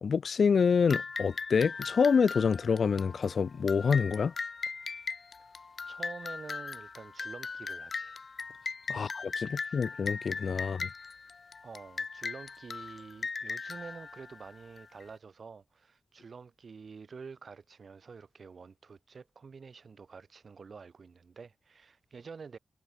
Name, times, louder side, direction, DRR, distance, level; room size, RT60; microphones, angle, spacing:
voice 1, 0.0-4.3 8.9-10.9, left 6 dB, 70° left, 0.3 m, -27 dB
sound 1, 0.9-15.0, left 4 dB, 50° left, 1.4 m, -39 dB
voice 2, 5.9-8.2 8.9-9.1 9.4-9.8 11.6-22.6, right 5 dB, 60° right, 5.4 m, -48 dB
wide cardioid pair, 135°, 0 cm